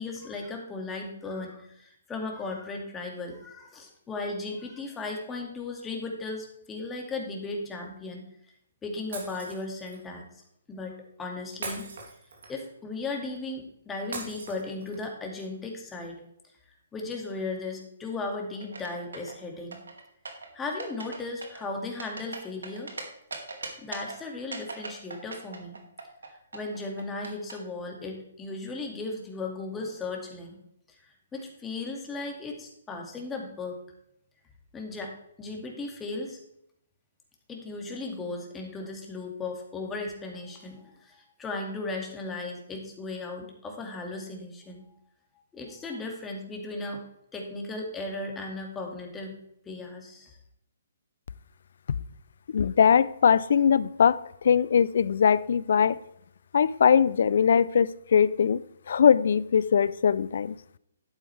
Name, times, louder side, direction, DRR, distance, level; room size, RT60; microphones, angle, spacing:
voice 1, 0.0-8.2 8.8-10.3 10.7-11.9 12.5-16.2 16.9-19.8 20.5-22.9 23.8-25.8 26.3-30.6 30.9-31.0 31.3-33.8 34.7-35.1 35.4-36.4 37.5-44.8 45.5-47.0 47.3-49.4 49.7-50.4, left 3 dB, 10° left, 1 dB, 2.0 m, -36 dB
Shatter, 9.1-10.0 11.6-12.7 14.1-15.1, right 3 dB, 70° right, 2.9 m, -40 dB
sound 1, 18.6-19.4 19.7-20.5 20.8-21.2 21.4-23.0 23.3-24.2 24.5-26.3 26.5-27.5, right 3 dB, 85° right, 2.1 m, -38 dB
voice 2, 52.5-54.2 54.4-56.0 56.5-58.6 58.9-60.5, left 7 dB, 65° left, 18 dB, 0.4 m, -21 dB
11.5 x 8.7 x 3.3 m, 0.75 s
hypercardioid pair, 140°, 0 cm